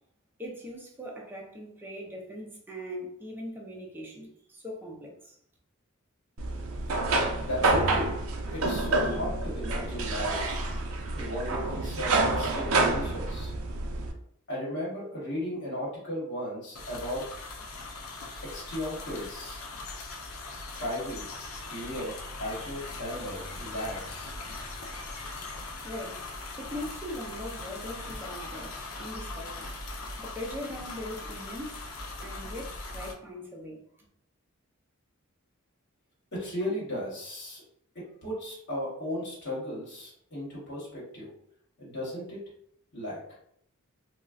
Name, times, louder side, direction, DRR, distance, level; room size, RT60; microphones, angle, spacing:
voice 1, 0.4-5.4 25.8-26.2 26.6-29.7 30.2-31.9 32.2-34.1, equal, 10° right, -2 dB, 0.5 m, -40 dB
sound 1, 6.4-14.1, right 2 dB, 70° right, 0.5 m, -28 dB
voice 2, 7.4-8.2 8.5-10.6 11.1-13.5 14.5-17.4 18.4-19.6 20.7-21.2 21.7-24.3 36.3-37.6 37.9-41.3 41.8-42.4 42.9-43.2, equal, 55° left, -6 dB, 1.0 m, -36 dB
sound 2, 16.8-33.1, left 2 dB, 70° left, 0.6 m, -40 dB
3.7 x 2.0 x 2.4 m, 0.70 s
head